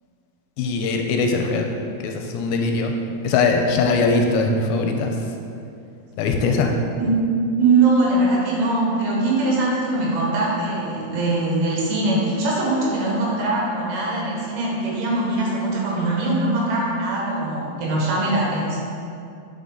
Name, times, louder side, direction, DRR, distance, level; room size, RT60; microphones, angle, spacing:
voice 1, 0.6-1.7 2.0-2.9 3.2-5.1 6.2-6.7, left 4 dB, 85° left, 3 dB, 2.4 m, -21 dB
voice 2, 7.6-18.8, right 2 dB, 80° right, -4 dB, 3.1 m, -22 dB
8.2 x 3.8 x 3.7 m, 2.5 s
omnidirectional pair, 4.4 m